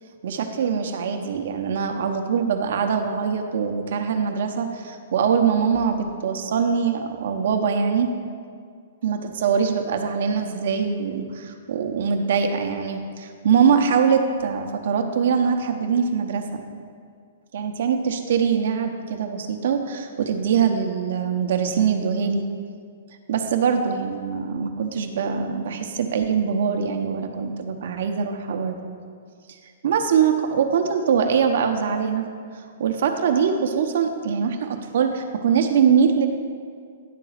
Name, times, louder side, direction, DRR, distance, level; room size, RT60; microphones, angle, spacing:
voice 1, 0.2-8.1 9.0-16.6 17.5-22.4 23.3-28.8 29.8-32.3 32.5-36.3, right 6 dB, 65° right, 5 dB, 0.8 m, -23 dB
10.0 x 3.8 x 6.5 m, 2.2 s
hypercardioid pair, 135°, 0 cm